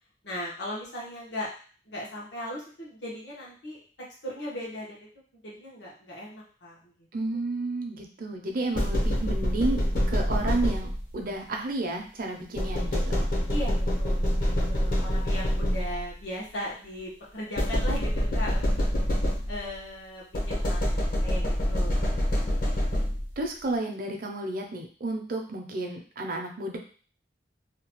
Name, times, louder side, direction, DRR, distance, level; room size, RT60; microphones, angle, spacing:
voice 1, 0.2-1.5 1.9-3.8 4.2-5.1 5.4-7.1 13.5-18.9 19.5-22.1 22.4-22.7, left 1 dB, 80° left, -5 dB, 1.1 m, -38 dB
voice 2, 7.1-9.8 10.1-13.3 22.7-22.9 23.4-26.8, right 2 dB, 50° right, 3 dB, 0.5 m, -32 dB
sound 1, 8.7-11.2 12.6-16.1 17.6-19.8 20.3-23.4, equal, 55° left, 0.8 m, -26 dB
2.8 x 2.2 x 2.9 m, 0.42 s
head